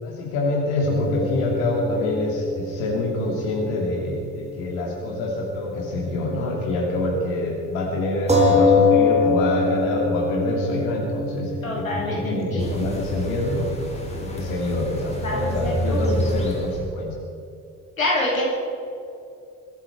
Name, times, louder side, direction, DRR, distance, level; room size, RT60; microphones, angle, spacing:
voice 1, 0.0-13.7 14.1-17.1, left 2 dB, 65° left, -1 dB, 2.5 m, -26 dB
sound 1, 0.8-4.7 5.0-5.1 8.3-13.5, left 3 dB, 15° right, 3.9 m, -24 dB
voice 2, 11.6-12.7 15.2-16.1 18.0-18.4, left 1 dB, 85° left, -3 dB, 2.9 m, -27 dB
sound 2, 12.6-16.9, equal, 15° left, 4.5 m, -29 dB
23.0 x 13.0 x 4.7 m, 2.6 s
figure-of-eight pair, 45°, 40 cm